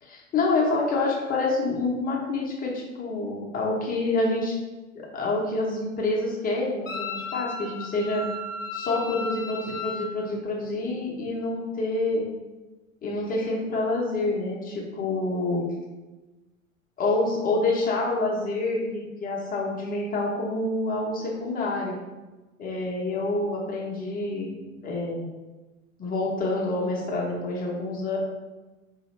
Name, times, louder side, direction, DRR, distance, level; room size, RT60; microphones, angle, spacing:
voice 1, 0.0-4.6 4.9-8.2 8.7-12.2 13.0-15.6 17.0-22.0 22.6-24.5 24.8-25.3 26.0-28.2, left 2 dB, 20° left, -3 dB, 0.9 m, -27 dB
Wind instrument woodwind instrument, 6.9-10.1, left 3 dB, 65° left, 1.0 m, -34 dB
5.0 x 2.8 x 3.2 m, 1.2 s
figure-of-eight pair, 95°, 41 cm